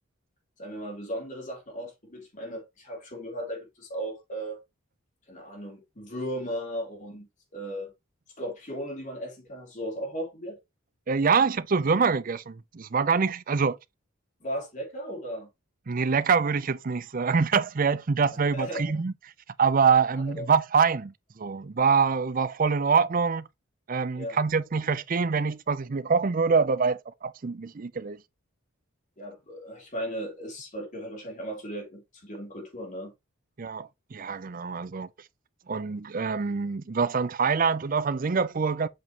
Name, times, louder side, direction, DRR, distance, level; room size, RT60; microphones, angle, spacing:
voice 1, 0.6-4.6 5.3-7.9 8.4-10.6 14.4-15.5 18.3-18.9 20.3-20.5 24.1-24.4 29.2-33.1, equal, 35° left, 3.0 m, -36 dB
voice 2, 11.1-13.8 15.9-19.1 19.6-23.5 23.9-28.2 33.6-35.1 35.7-38.9, right 5 dB, 40° right, 0.5 m, -25 dB
7.8 x 5.3 x 2.9 m
head